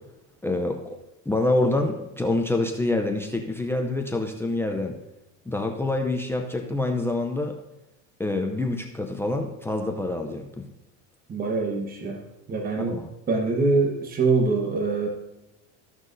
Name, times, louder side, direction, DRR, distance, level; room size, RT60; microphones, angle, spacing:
voice 1, 0.4-1.0 1.3-5.0 5.5-7.5 8.2-10.7 12.9-13.1, left 2 dB, 5° left, 4 dB, 0.6 m, -26 dB
voice 2, 11.3-12.2 12.5-13.0 13.3-15.1, right 3 dB, 25° right, 2 dB, 1.2 m, -24 dB
14.5 x 6.1 x 2.7 m, 0.96 s
supercardioid pair, 120°, 36 cm